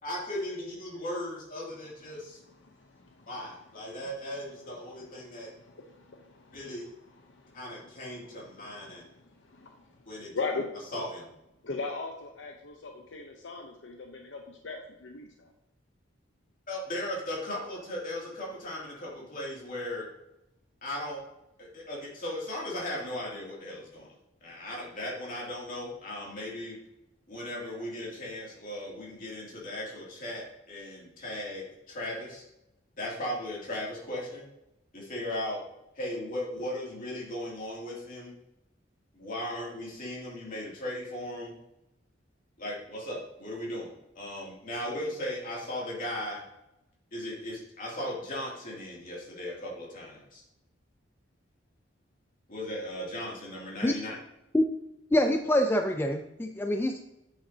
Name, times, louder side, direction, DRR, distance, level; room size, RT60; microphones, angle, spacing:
voice 1, 0.0-2.4 3.3-5.5 6.5-6.8 7.5-9.0 10.1-10.3 10.9-11.3 16.7-20.1 20.8-21.2 21.7-24.2 24.4-26.8 27.3-32.4 33.0-34.5 34.9-35.6 36.0-38.3 39.1-41.5 42.6-46.4 47.1-50.4 52.5-54.2, left 1 dB, 45° left, -4 dB, 2.6 m, -37 dB
voice 2, 6.1-6.5 8.9-9.1 9.5-9.7 10.3-10.6 11.6-15.5, left 4 dB, 70° left, 3 dB, 0.7 m, -37 dB
voice 3, 55.1-57.0, left 1 dB, 10° left, 5 dB, 0.3 m, -25 dB
8.4 x 6.0 x 2.7 m, 0.89 s
head